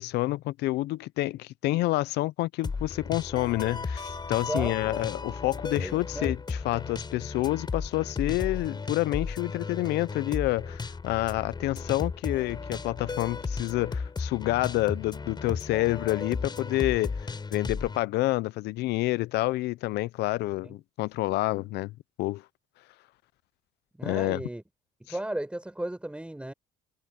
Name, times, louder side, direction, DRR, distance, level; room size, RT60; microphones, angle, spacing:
voice 1, 0.0-21.9 22.2-22.4 24.0-24.4, left 18 dB, 80° left, 0.6 m, -28 dB
sound 1, 2.6-18.0, left 4 dB, 25° left, 6.7 m, -35 dB
voice 2, 4.4-4.8 5.8-6.3 20.6-20.8 24.0-24.6 25.0-26.5, right 1 dB, 5° right, 5.3 m, -35 dB
cardioid pair, 110°, 17 cm